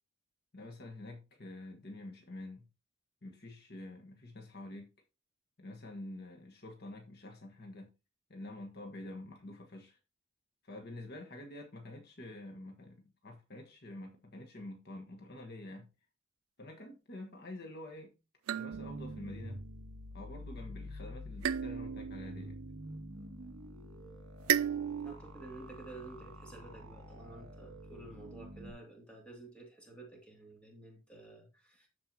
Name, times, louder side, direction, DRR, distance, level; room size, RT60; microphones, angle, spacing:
voice 1, 0.5-2.7 3.2-4.9 5.6-7.9 8.3-10.0 10.6-15.9 16.6-18.1 18.5-19.6 20.1-22.6, left 1 dB, 50° left, 1.3 m, -47 dB
sound 1, 18.5-20.1 21.4-23.5 24.5-25.1, right 9 dB, 85° right, 0.3 m, -36 dB
sound 2, 18.7-28.7, left 1 dB, 65° right, 2.2 m, -48 dB
voice 2, 25.0-31.9, right 2 dB, 5° left, 2.5 m, -51 dB
13.5 x 4.7 x 2.8 m
head